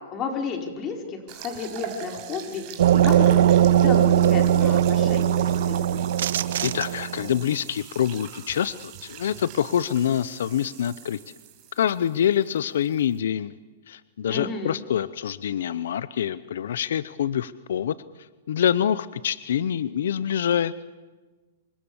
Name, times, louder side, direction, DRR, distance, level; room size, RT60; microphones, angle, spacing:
voice 1, 0.1-3.4 3.8-6.1 14.3-14.8, left 5 dB, 25° left, 3 dB, 5.2 m, -32 dB
sound 1, 1.3-13.2, right 9 dB, 40° right, 5.4 m, -43 dB
sound 2, 2.8-7.3, right 10 dB, 75° right, 1.5 m, -20 dB
voice 2, 6.6-11.2 11.8-13.5 13.9-17.9 18.5-20.7, left 9 dB, 75° left, 16 dB, 0.8 m, -25 dB
28.0 x 24.5 x 7.3 m, 1.3 s
hypercardioid pair, 145°, 0 cm